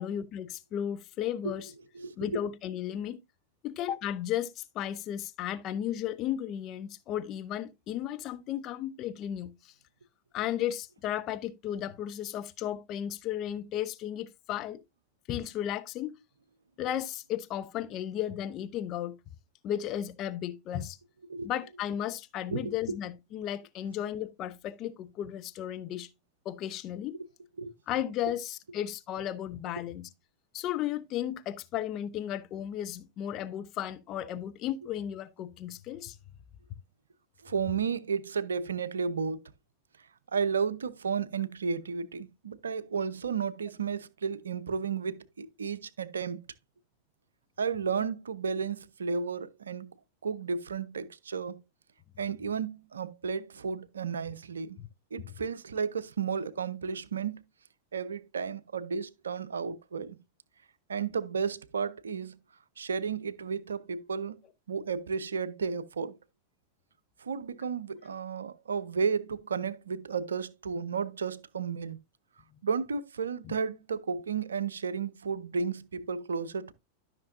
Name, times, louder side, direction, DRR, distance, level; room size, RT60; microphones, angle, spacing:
voice 1, 0.0-1.7 2.2-3.2 3.6-9.7 10.3-14.8 15.3-16.2 16.8-19.2 19.6-21.0 21.4-26.1 26.4-27.2 27.9-30.1 30.5-36.2 54.8-54.9 73.4-73.5, left 11 dB, 35° left, 0.7 m, -34 dB
voice 2, 1.4-2.4 21.3-21.5 21.9-22.0 22.5-23.0 27.1-27.3 27.6-27.7 28.2-28.3 37.4-39.5 40.3-46.4 47.6-49.9 50.2-51.6 52.2-54.8 55.1-57.3 57.9-60.2 60.9-62.4 62.8-64.4 64.7-66.2 67.2-72.0 72.6-76.7, right 6 dB, 70° right, 0.6 m, -33 dB
13.0 x 6.0 x 2.6 m
figure-of-eight pair, 90°, 0 cm